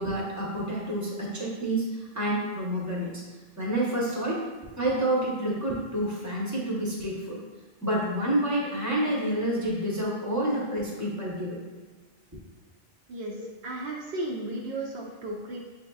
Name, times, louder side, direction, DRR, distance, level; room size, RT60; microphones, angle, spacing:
voice 1, 0.0-1.9 2.1-3.2 3.6-4.4 4.8-7.4 7.8-11.6 13.4-13.5, right 1 dB, 20° right, -4 dB, 0.8 m, -28 dB
voice 2, 13.1-15.7, right 1 dB, 75° right, -2 dB, 0.8 m, -35 dB
7.0 x 2.7 x 2.3 m, 1.3 s
omnidirectional pair, 1.0 m